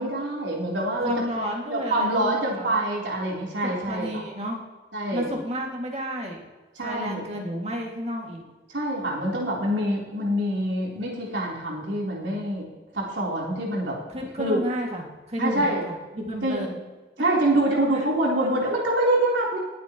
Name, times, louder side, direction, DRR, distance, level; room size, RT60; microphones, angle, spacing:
voice 1, 0.0-1.1 1.7-4.2 4.9-5.3 6.8-7.2 8.7-12.7 12.9-14.0 14.4-14.6 15.4-15.8 16.4-16.6 17.2-19.6, right 1 dB, 80° right, -3 dB, 3.6 m, -25 dB
voice 2, 1.0-2.7 3.6-4.6 5.1-6.4 6.8-8.4 14.1-16.8 17.9-18.0, equal, 35° right, 0 dB, 2.1 m, -31 dB
20.0 x 8.7 x 3.0 m, 1.2 s
head